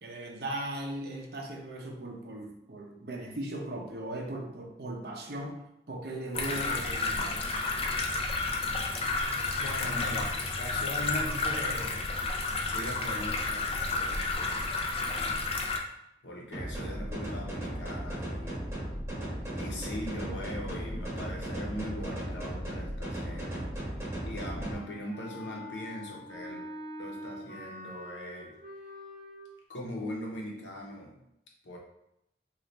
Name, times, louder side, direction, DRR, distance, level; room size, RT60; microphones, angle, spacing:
voice 1, 0.0-5.6 5.9-7.4, right 1 dB, 60° right, 1 dB, 0.6 m, -38 dB
sound 1, 6.3-15.8, left 3 dB, 30° left, 0.4 m, -31 dB
voice 2, 9.6-12.0 12.6-14.6 15.0-15.5 16.2-18.7 19.5-24.0 24.2-26.6 27.0-28.5 29.7-31.2 31.6-31.8, equal, 85° left, -1 dB, 0.9 m, -40 dB
sound 2, 16.5-24.7, right 1 dB, 15° right, 0.9 m, -36 dB
Wind instrument woodwind instrument, 24.6-29.5, left 1 dB, 45° right, 1.1 m, -45 dB
3.9 x 2.5 x 3.2 m, 0.82 s
head